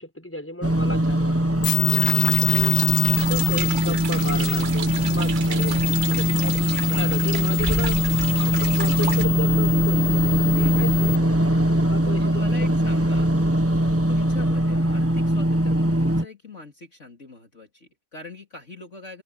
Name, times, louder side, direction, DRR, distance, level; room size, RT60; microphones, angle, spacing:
voice 1, 0.0-2.8 3.3-8.0 8.4-12.7, left 1 dB, 5° left, 4.9 m, -35 dB
sound 1, 0.6-16.2, right 1 dB, 10° right, 1.3 m, -21 dB
sound 2, 1.6-11.2, left 16 dB, 65° left, 0.9 m, -28 dB
voice 2, 1.9-2.7 3.9-5.1 10.5-10.8 12.0-13.3 13.8-19.2, left 4 dB, 45° left, 3.0 m, -42 dB
sound 3, 1.9-9.2, right 8 dB, 85° right, 0.4 m, -34 dB
open air
omnidirectional pair, 1.8 m